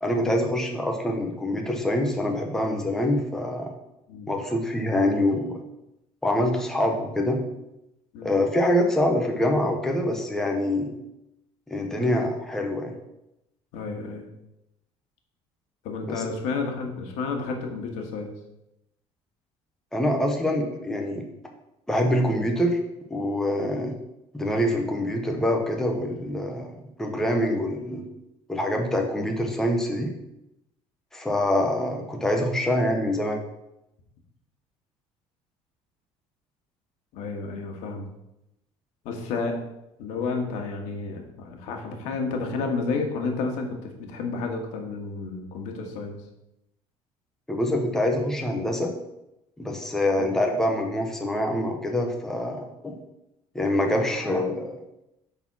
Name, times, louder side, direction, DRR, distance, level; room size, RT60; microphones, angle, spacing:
voice 1, 0.0-3.7 4.3-5.6 6.2-7.4 8.2-10.9 11.7-12.9 16.1-16.2 19.9-21.3 21.9-22.8 23.1-23.9 24.3-28.0 28.5-30.1 31.1-33.4 47.5-48.9 49.6-52.9 53.5-54.7, left 1 dB, 5° left, 2 dB, 0.9 m, -25 dB
voice 2, 13.7-14.3 15.8-18.3 23.6-23.9 37.1-38.1 39.0-39.6 40.0-46.2 50.2-50.3, left 4 dB, 85° left, 3 dB, 1.6 m, -31 dB
8.8 x 4.1 x 6.0 m, 0.88 s
cardioid pair, 175°, 11 cm